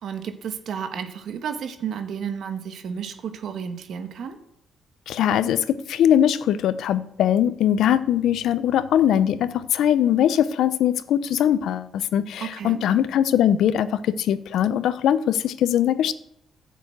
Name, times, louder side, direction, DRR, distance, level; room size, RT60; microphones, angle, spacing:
voice 1, 0.0-4.4 12.4-12.8, right 7 dB, 70° right, 1.3 m, -32 dB
voice 2, 5.1-16.1, left 10 dB, 75° left, 0.6 m, -21 dB
10.5 x 6.9 x 7.8 m
cardioid pair, 90°, 0 cm